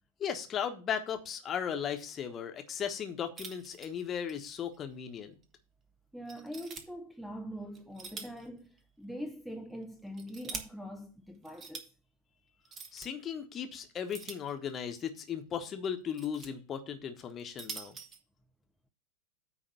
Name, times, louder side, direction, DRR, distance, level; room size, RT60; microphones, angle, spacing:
voice 1, 0.2-5.4 12.9-18.0, left 8 dB, 25° left, 1.2 m, -36 dB
sound 1, 3.4-4.4 4.7-4.8 5.4-5.5 6.3-6.8 7.7-8.5 8.8-8.9 9.8-10.6 11.4-11.9 12.6-13.1 14.1-14.9 15.8-16.5 17.3-18.2, right 5 dB, 25° right, 1.2 m, -44 dB
voice 2, 6.1-11.9, equal, ahead, 0.6 m, -43 dB
9.4 x 3.5 x 6.7 m
figure-of-eight pair, 90°, 0 cm